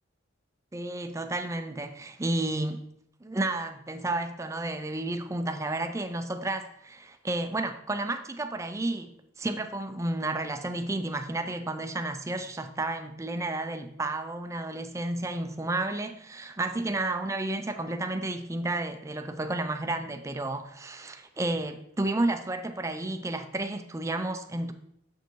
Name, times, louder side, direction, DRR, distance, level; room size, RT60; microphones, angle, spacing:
voice 1, 0.7-2.8 3.2-24.7, right 2 dB, 15° right, 0.4 m, -31 dB
7.0 x 6.7 x 3.1 m
head